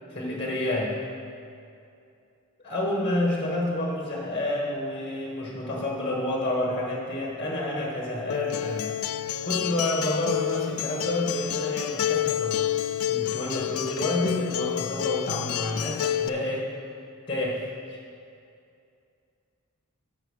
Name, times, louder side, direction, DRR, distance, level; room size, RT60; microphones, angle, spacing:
voice 1, 0.1-0.9 2.6-8.9 9.4-12.6 13.1-16.6 17.3-17.6 17.9-18.0, left 1 dB, 25° left, -3 dB, 1.4 m, -29 dB
Acoustic guitar, 8.3-16.3, left 11 dB, 70° left, 0.3 m, -29 dB
8.8 x 5.8 x 6.6 m, 2.5 s
head